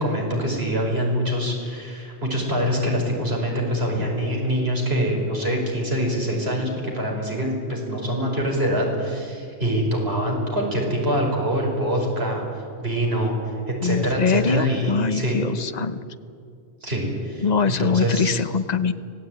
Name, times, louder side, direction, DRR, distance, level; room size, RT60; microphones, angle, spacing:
voice 1, 0.0-12.4 12.8-13.3 13.7-15.4 16.8-18.4, equal, 75° right, 0 dB, 5.4 m, -24 dB
voice 2, 13.8-16.0 17.4-18.9, left 5 dB, 45° left, 11 dB, 1.0 m, -23 dB
25.5 x 18.0 x 9.1 m, 2.3 s
omnidirectional pair, 1.1 m